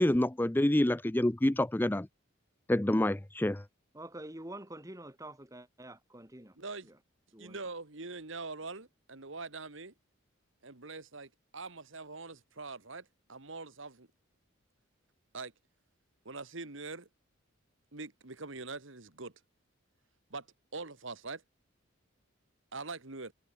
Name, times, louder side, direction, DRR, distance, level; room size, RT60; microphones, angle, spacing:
voice 1, 0.0-2.1 2.7-3.6, left 1 dB, 10° left, 0.5 m, -27 dB
voice 2, 3.9-6.6 7.3-7.6, right 1 dB, 15° right, 2.9 m, -46 dB
voice 3, 6.6-6.9 7.4-9.9 10.6-14.1 15.3-15.5 16.3-17.1 17.9-19.3 20.3-20.5 20.7-21.4 22.7-23.3, right 3 dB, 65° right, 2.0 m, -43 dB
head